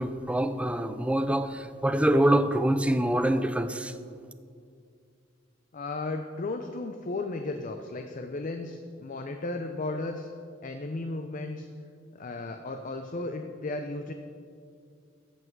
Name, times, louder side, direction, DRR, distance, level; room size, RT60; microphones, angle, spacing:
voice 1, 0.0-3.9, right 1 dB, 5° right, 0.4 m, -25 dB
voice 2, 5.7-10.3 10.6-11.7 12.1-14.1, left 2 dB, 45° left, 0.5 m, -34 dB
13.5 x 8.0 x 4.6 m
head